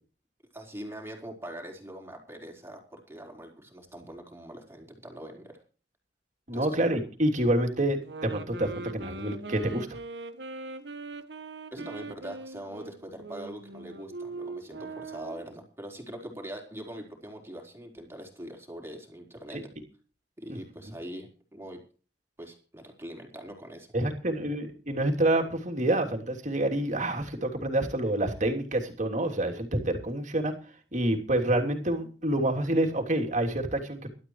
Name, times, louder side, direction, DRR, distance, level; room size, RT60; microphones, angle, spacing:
voice 1, 0.5-5.6 6.5-6.7 11.7-19.6 20.4-21.8 22.4-23.9, right 1 dB, 15° right, 1 dB, 4.3 m, -42 dB
voice 2, 6.5-10.0 20.5-20.6 23.9-30.5 30.9-34.1, right 1 dB, 45° right, 2 dB, 3.1 m, -27 dB
sound 1, 8.0-15.6, right 3 dB, 85° right, 1.5 m, -41 dB
21.0 x 12.5 x 3.2 m, 0.38 s
head